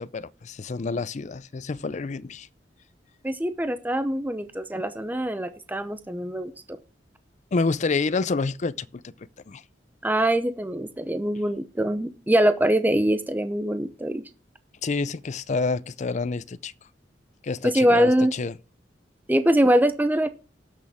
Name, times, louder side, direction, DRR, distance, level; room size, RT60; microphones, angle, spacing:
voice 1, 0.0-2.5 7.5-9.6 14.8-16.7 17.4-18.5, left 4 dB, 40° left, 0.5 m, -28 dB
voice 2, 3.2-6.8 10.0-14.2 17.6-18.3 19.3-20.3, right 1 dB, 10° right, 0.7 m, -23 dB
18.5 x 6.4 x 3.5 m
head